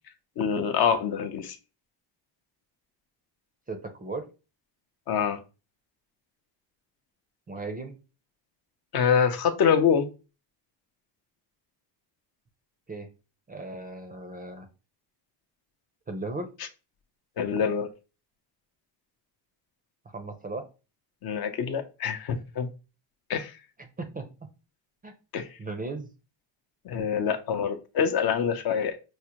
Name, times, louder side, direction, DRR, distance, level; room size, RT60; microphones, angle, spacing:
voice 1, 0.4-1.6 5.1-5.4 8.9-10.1 17.4-17.9 21.2-22.7 23.3-23.5 25.3-25.5 26.9-29.0, left 7 dB, 55° left, 0.6 m, -25 dB
voice 2, 3.7-4.3 7.5-8.0 12.9-13.1 13.5-14.7 16.1-16.5 20.1-20.7 23.8-24.3 25.0-25.1 25.6-26.1, right 3 dB, 20° right, 0.4 m, -36 dB
4.7 x 2.1 x 2.8 m
cardioid pair, 105°, 45 cm